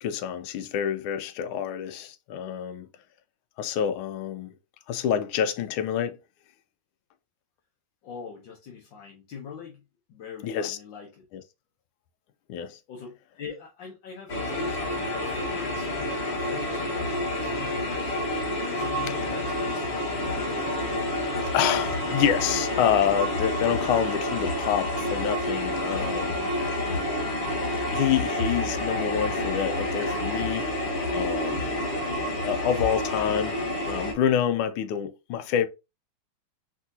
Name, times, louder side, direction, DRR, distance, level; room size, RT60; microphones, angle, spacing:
voice 1, 0.0-2.9 3.6-4.5 4.9-6.2 10.4-10.8 11.3-11.4 12.5-12.8 19.9-20.0 20.3-20.4 21.5-26.5 27.9-30.7 31.1-31.8 32.4-33.6 33.9-35.7, left 9 dB, 85° left, 1.5 m, -27 dB
voice 2, 8.0-9.8 10.1-11.2 12.9-18.2 18.7-19.9 20.3-20.7, left 6 dB, 70° left, 1.5 m, -42 dB
sound 1, 14.3-34.1, left 1 dB, 40° left, 1.1 m, -29 dB
4.8 x 3.6 x 2.7 m
omnidirectional pair, 2.2 m